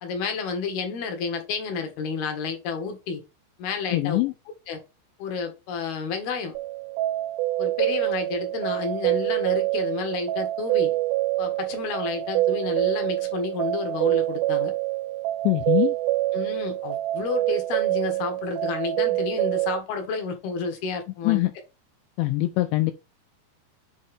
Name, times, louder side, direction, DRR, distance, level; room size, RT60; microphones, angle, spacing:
voice 1, 0.0-3.2 3.6-4.2 4.7-4.8 5.2-6.6 7.6-10.9 11.4-14.7 16.3-21.4, left 5 dB, 65° left, 3.0 m, -30 dB
voice 2, 3.9-4.3 15.4-16.0 21.2-21.5 22.2-22.9, left 18 dB, 85° left, 2.8 m, -22 dB
sound 1, 6.6-19.8, right 17 dB, 80° right, 2.6 m, -26 dB
7.7 x 4.2 x 3.5 m
omnidirectional pair, 5.2 m